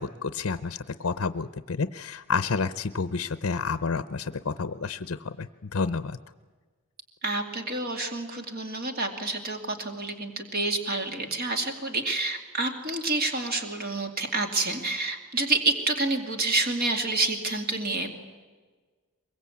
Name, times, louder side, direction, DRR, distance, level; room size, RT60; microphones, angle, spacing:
voice 1, 0.0-6.2, left 4 dB, 60° left, 12 dB, 0.7 m, -30 dB
voice 2, 7.2-18.1, right 2 dB, 45° right, 4 dB, 2.5 m, -28 dB
23.0 x 22.5 x 8.5 m, 1.4 s
head